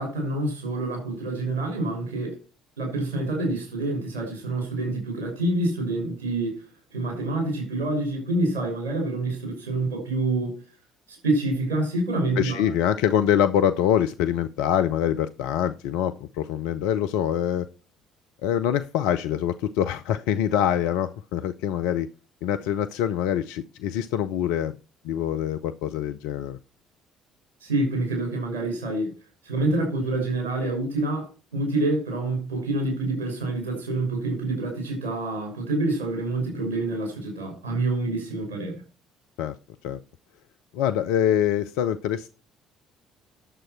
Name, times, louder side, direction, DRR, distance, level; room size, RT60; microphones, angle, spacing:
voice 1, 0.0-2.4 2.8-10.7 11.1-12.6 27.6-29.1 29.4-38.8, right 2 dB, 75° right, 2 dB, 6.2 m, -27 dB
voice 2, 12.4-17.7 18.4-22.1 22.4-24.7 25.0-26.6 39.4-39.6 39.8-40.0 40.7-42.3, left 10 dB, 65° left, 10 dB, 0.5 m, -24 dB
11.0 x 7.6 x 4.5 m, 0.33 s
figure-of-eight pair, 50°, 0 cm